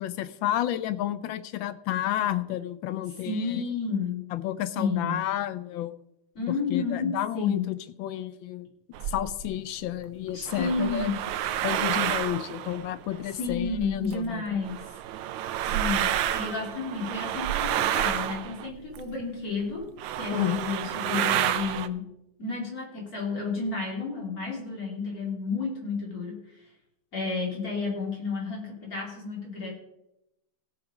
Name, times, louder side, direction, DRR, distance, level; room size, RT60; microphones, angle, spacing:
voice 1, 0.0-3.6 4.3-5.9 6.7-8.7 9.1-11.1 11.6-14.4 20.3-20.7, left 13 dB, 80° left, 14 dB, 1.4 m, -31 dB
voice 2, 3.2-4.2 4.8-5.2 6.4-7.7 10.3-11.2 13.4-14.8 15.7-19.9 20.2-22.1 22.4-26.4 27.1-29.7, left 4 dB, 45° left, -2 dB, 3.7 m, -31 dB
sound 1, 8.9-9.5 10.3-14.2 14.6-19.2 19.7-19.8 20.0-21.9, right 11 dB, 85° right, 1.3 m, -30 dB
16.5 x 5.9 x 5.1 m, 0.86 s
omnidirectional pair, 2.1 m